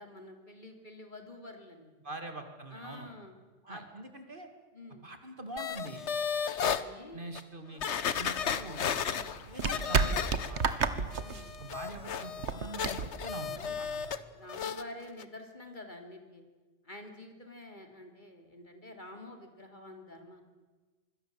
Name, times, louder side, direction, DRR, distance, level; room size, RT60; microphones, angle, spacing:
voice 1, 0.0-1.9 2.7-3.3 3.7-3.8 4.7-5.1 6.7-7.3 8.2-8.3 9.1-9.4 11.2-11.5 13.4-14.0 14.3-16.4 16.8-20.4, left 1 dB, 40° left, 5 dB, 3.1 m, -48 dB
voice 2, 2.0-3.1 3.6-4.5 5.0-6.0 7.1-7.8 8.2-8.9 9.5-10.2 10.5-11.1 11.6-14.1, right 2 dB, 45° right, 6 dB, 2.5 m, -44 dB
sound 1, 5.6-6.8 7.4-7.5 7.8-10.8 11.1-14.2 14.5-14.8 15.2-15.3, left 7 dB, 70° left, 1.3 m, -34 dB
sound 2, 8.1-14.1, right 5 dB, 70° right, 1.6 m, -33 dB
26.0 x 21.5 x 7.6 m, 1.3 s
omnidirectional pair, 1.2 m